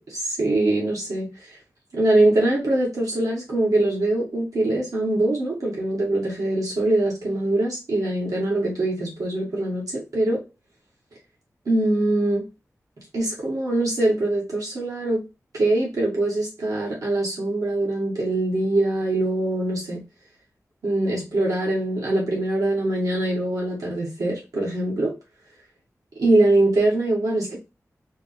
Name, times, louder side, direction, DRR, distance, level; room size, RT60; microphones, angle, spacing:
voice 1, 0.1-1.3 1.9-10.4 11.6-12.4 13.1-15.2 15.5-20.0 20.8-25.1 26.2-27.6, right 2 dB, 90° right, 1.7 m, -23 dB
4.8 x 2.1 x 4.1 m
wide cardioid pair, 65°, 6 cm